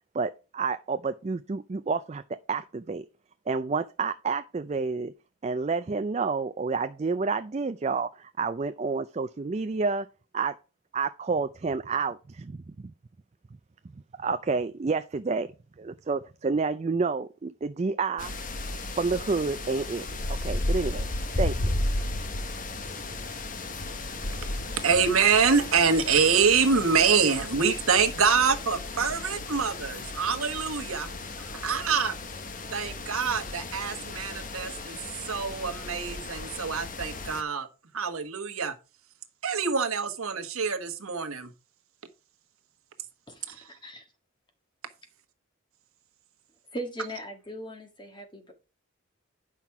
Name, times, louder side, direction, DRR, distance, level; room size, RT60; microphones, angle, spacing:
voice 1, 0.1-3.1 3.5-5.1 5.4-10.1 10.3-10.5 10.9-12.9 14.2-15.5 15.8-18.3 19.0-20.1 20.4-21.1 21.4-21.8, right 4 dB, 30° right, 0.4 m, -29 dB
sound 1, 18.2-37.4, left 2 dB, 40° left, 0.9 m, -34 dB
voice 2, 24.8-31.1 31.5-32.2 32.7-35.0 35.2-37.7 37.9-38.7 39.4-41.5, right 6 dB, 85° right, 1.3 m, -25 dB
voice 3, 43.3-44.1 46.7-48.5, equal, 20° left, 1.6 m, -39 dB
9.1 x 5.8 x 4.6 m
head